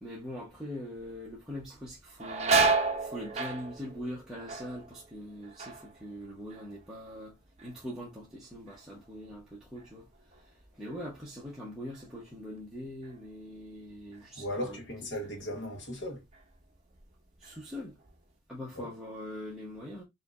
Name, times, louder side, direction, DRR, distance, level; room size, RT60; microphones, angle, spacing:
voice 1, 0.0-7.4 7.6-10.1 10.3-14.8 17.4-18.0 18.5-20.0, equal, ahead, 0.8 m, -42 dB
sound 1, 1.0-1.4 1.7-7.3 7.6-8.2 8.7-11.6 11.9-12.1 13.0-13.2 13.7-14.8 15.2-15.4 16.0-16.6 17.0-18.1, right 4 dB, 30° right, 0.7 m, -33 dB
voice 2, 14.3-16.2 18.8-18.9, equal, 60° left, 1.2 m, -37 dB
5.0 x 2.7 x 2.4 m
head